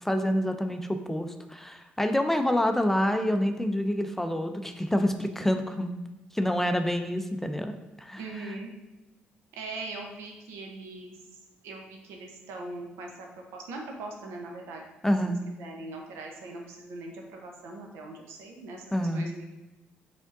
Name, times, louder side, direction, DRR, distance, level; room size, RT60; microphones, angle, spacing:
voice 1, 0.0-5.9 6.3-7.7 8.0-8.2 15.0-15.4 18.9-19.3, equal, 5° left, 7 dB, 0.4 m, -27 dB
voice 2, 8.2-8.7 9.5-11.2 11.6-13.3 13.5-14.8 15.2-19.5, right 2 dB, 85° right, 1 dB, 0.7 m, -41 dB
5.0 x 3.5 x 2.6 m, 1.1 s
supercardioid pair, 70°, 4 cm